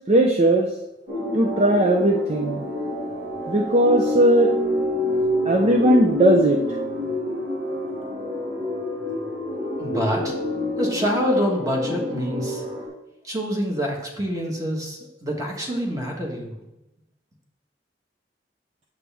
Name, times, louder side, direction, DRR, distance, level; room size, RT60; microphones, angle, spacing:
voice 1, 0.1-0.7 1.3-2.7 3.5-4.5 5.5-6.6, right 1 dB, 35° right, 2 dB, 0.6 m, -18 dB
sound 1, 1.1-12.9, left 2 dB, 60° right, 2.1 m, -27 dB
voice 2, 9.8-10.4 10.8-12.6 13.2-16.5, equal, 20° right, 0 dB, 1.5 m, -26 dB
8.1 x 7.1 x 3.4 m, 0.93 s
head